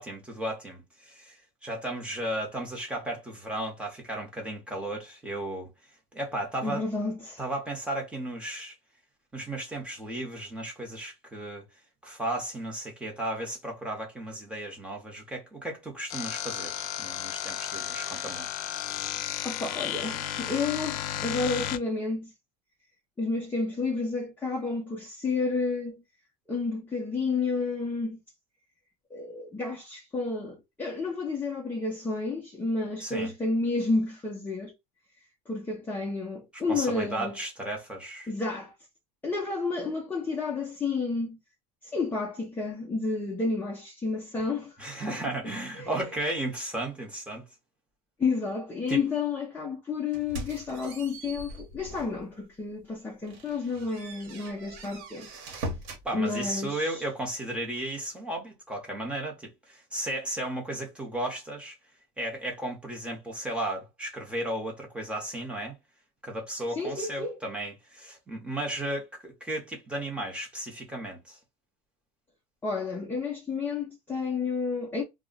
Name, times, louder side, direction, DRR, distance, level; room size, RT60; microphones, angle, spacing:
voice 1, 0.0-1.4 1.6-5.7 6.1-6.8 7.4-8.7 9.3-11.6 12.0-18.5 33.0-33.3 36.7-38.3 44.8-47.4 48.9-49.0 56.0-61.8 62.2-65.8 66.2-71.4, right 1 dB, 5° right, 1.0 m, -34 dB
voice 2, 6.6-7.4 19.4-22.3 23.2-26.0 26.5-28.2 29.1-34.7 35.5-37.3 38.3-38.7 39.2-41.4 41.8-44.8 45.1-45.3 45.7-46.0 48.2-55.3 56.1-57.0 66.7-67.4 72.6-75.0, left 4 dB, 10° left, 0.6 m, -31 dB
sound 1, 16.1-21.8, left 11 dB, 55° left, 0.4 m, -33 dB
sound 2, 50.1-52.2 52.7-52.8 53.2-56.1, right 1 dB, 75° right, 1.1 m, -40 dB
2.3 x 2.1 x 3.8 m
cardioid pair, 145°, 18 cm